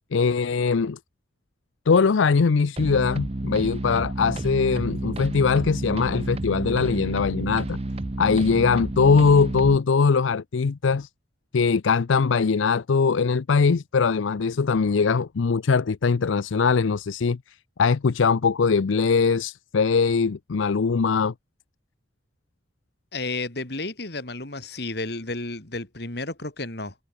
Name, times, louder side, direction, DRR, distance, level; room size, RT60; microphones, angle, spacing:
voice 1, 0.1-1.0 1.9-7.8 8.2-11.1 11.5-17.4 17.8-21.3, left 5 dB, 85° left, 0.5 m, -21 dB
sound 1, 2.8-9.8, right 1 dB, 30° right, 0.7 m, -30 dB
voice 2, 23.1-26.9, left 2 dB, 55° left, 2.7 m, -32 dB
head